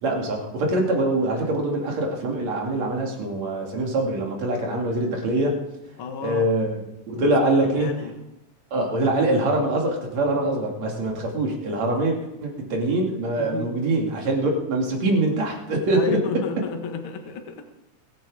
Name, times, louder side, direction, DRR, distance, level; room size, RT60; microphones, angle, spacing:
voice 1, 0.0-5.6 6.2-6.7 7.1-7.9 8.7-16.2, right 2 dB, 60° right, 0 dB, 3.8 m, -24 dB
voice 2, 6.0-6.5 7.2-8.1 13.4-13.8 15.9-17.6, left 5 dB, 50° left, 4 dB, 2.1 m, -32 dB
22.0 x 9.2 x 4.9 m, 0.92 s
omnidirectional pair, 3.5 m